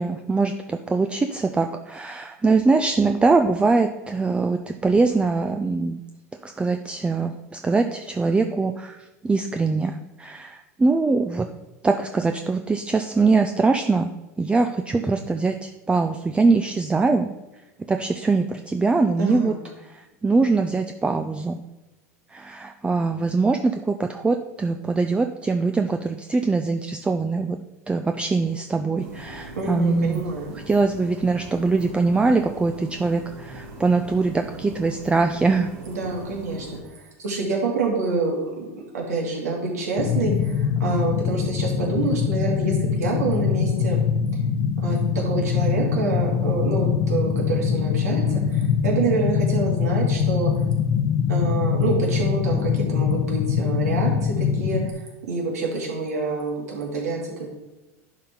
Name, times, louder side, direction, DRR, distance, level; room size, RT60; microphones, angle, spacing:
voice 1, 0.0-6.0 6.4-11.5 11.8-14.1 14.4-17.3 17.9-19.5 19.8-21.6 22.3-27.6 27.9-30.2 30.7-35.7, right 3 dB, 15° right, 6 dB, 0.5 m, -22 dB
voice 2, 19.2-19.6 29.6-30.6 35.9-36.7 37.0-38.7 38.9-44.0 44.8-50.5 51.3-57.5, right 3 dB, 85° right, -2 dB, 2.5 m, -27 dB
sound 1, 29.0-36.8, right 1 dB, 60° right, 2.5 m, -40 dB
sound 2, 40.0-54.9, left 7 dB, 55° left, 0.8 m, -23 dB
11.0 x 4.2 x 3.7 m, 1.1 s
hypercardioid pair, 100°, 8 cm